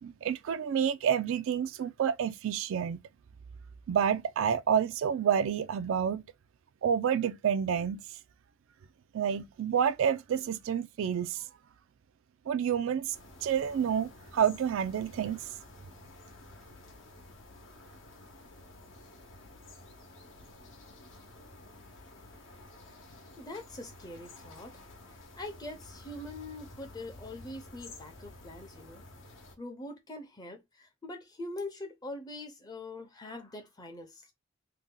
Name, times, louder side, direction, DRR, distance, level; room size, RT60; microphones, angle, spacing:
voice 1, 0.0-3.0 3.9-6.2 6.8-8.0 9.1-11.4 12.5-13.1 13.4-15.4, right 8 dB, 70° right, 0.3 m, -29 dB
sound 1, 13.1-29.6, left 2 dB, 65° left, 0.8 m, -52 dB
voice 2, 23.4-24.8 25.1-29.0 29.6-34.3, left 2 dB, 20° left, 0.6 m, -43 dB
2.7 x 2.2 x 3.6 m
head